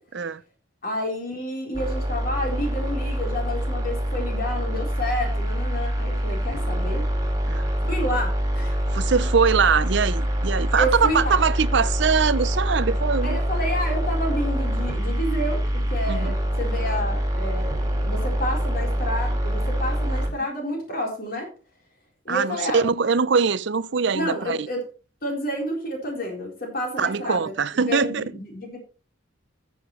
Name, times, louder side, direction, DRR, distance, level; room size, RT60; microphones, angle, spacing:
voice 1, 0.8-7.1 7.8-8.7 10.8-11.4 13.2-17.8 18.1-21.5 22.2-22.9 24.1-24.8 25.2-27.4 27.7-28.8, equal, 45° left, 3.9 m, -30 dB
sound 1, 1.7-20.3, equal, 20° right, 2.4 m, -25 dB
voice 2, 8.9-13.4 16.1-16.3 22.3-24.7 27.0-28.2, right 5 dB, 60° right, 0.5 m, -22 dB
14.0 x 7.9 x 3.1 m
head